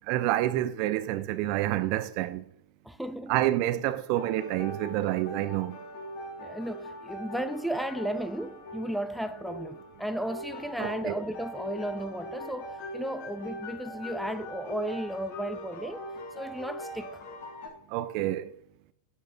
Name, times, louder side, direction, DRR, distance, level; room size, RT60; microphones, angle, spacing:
voice 1, 0.1-2.4 3.3-5.8 10.8-11.2 17.9-18.5, right 14 dB, 45° right, 0.7 m, -28 dB
voice 2, 2.8-3.4 6.4-16.1 16.4-17.2, right 1 dB, ahead, 0.6 m, -34 dB
sound 1, 4.1-17.7, equal, 50° left, 3.1 m, -41 dB
11.5 x 8.3 x 4.3 m
figure-of-eight pair, 90°, 0 cm